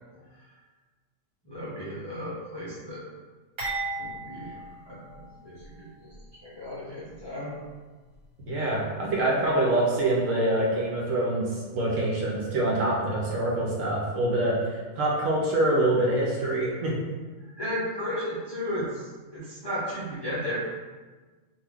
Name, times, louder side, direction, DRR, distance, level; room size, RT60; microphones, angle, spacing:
voice 1, 1.4-3.0 4.0-6.1 6.4-7.6 17.4-20.5, equal, 25° left, -10 dB, 0.5 m, -35 dB
sound 1, 3.6-5.7 6.1-6.3 7.1-7.3, right 3 dB, 50° right, 1.6 m, -36 dB
voice 2, 8.5-16.9, right 1 dB, 70° right, -4 dB, 1.1 m, -25 dB
2.6 x 2.5 x 3.5 m, 1.3 s
omnidirectional pair, 1.4 m